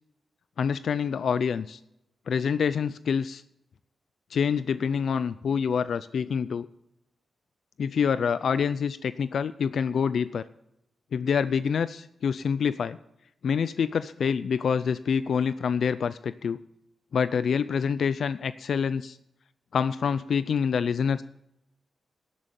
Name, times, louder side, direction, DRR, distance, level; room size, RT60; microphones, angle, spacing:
voice 1, 0.6-1.8 2.3-3.4 4.3-6.7 7.8-10.5 11.1-13.0 13.4-16.6 17.1-19.2 19.7-21.2, left 6 dB, 65° left, 14 dB, 0.4 m, -26 dB
11.5 x 8.2 x 7.5 m, 0.82 s
wide cardioid pair, 130°, 0 cm